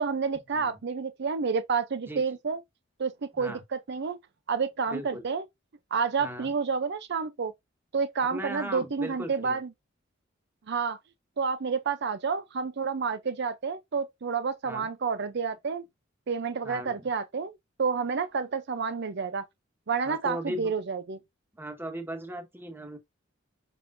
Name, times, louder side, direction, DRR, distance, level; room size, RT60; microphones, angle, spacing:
voice 1, 0.0-2.6 3.0-4.2 4.5-5.4 5.9-7.5 7.9-9.7 10.7-11.0 11.4-15.8 16.3-17.5 17.8-19.4 19.9-21.2, right 5 dB, 60° right, 0.6 m, -29 dB
voice 2, 4.9-5.2 6.2-6.5 8.2-9.6 14.6-14.8 16.6-17.1 20.0-20.7 21.6-23.0, equal, 10° right, 1.5 m, -38 dB
7.2 x 5.3 x 2.6 m
head